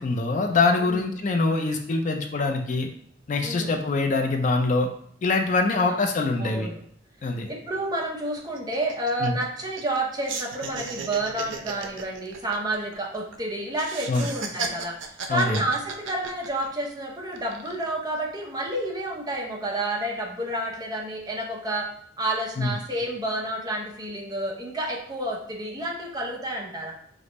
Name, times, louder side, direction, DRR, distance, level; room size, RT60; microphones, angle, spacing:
voice 1, 0.0-2.9 3.3-4.9 5.2-6.7 7.2-7.5 9.2-9.4 14.1-14.3 15.3-15.6 22.6-22.7, left 3 dB, 40° left, 4 dB, 0.4 m, -24 dB
voice 2, 3.4-3.7 5.9-6.0 6.4-6.8 7.5-21.9 22.2-26.9, right 1 dB, 20° right, -1 dB, 0.7 m, -30 dB
sound 1, 7.5-7.6 7.9-8.0 8.4-10.0 10.3-13.4 13.7-16.9 17.3-17.9, right 4 dB, 85° right, 0.5 m, -35 dB
5.0 x 2.0 x 3.9 m, 0.64 s
head